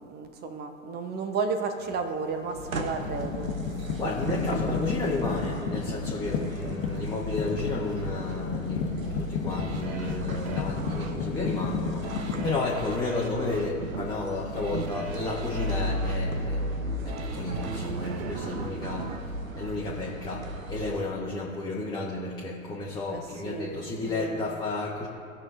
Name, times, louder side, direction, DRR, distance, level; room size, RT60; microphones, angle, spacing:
voice 1, 0.0-3.5 4.4-5.0 6.2-6.8 23.1-24.4, right 4 dB, 25° right, 7 dB, 0.9 m, -34 dB
sound 1, 1.9-2.1 2.5-12.5, left 6 dB, 40° left, 1.0 m, -33 dB
sound 2, 2.5-21.0, right 1 dB, 80° right, 0.9 m, -35 dB
voice 2, 4.0-19.1 19.6-25.1, left 3 dB, 10° left, -4 dB, 1.1 m, -32 dB
sound 3, 9.5-20.4 20.9-21.0, right 6 dB, 50° right, 0.8 m, -42 dB
17.5 x 6.5 x 2.6 m, 2.8 s
figure-of-eight pair, 90°, 40 cm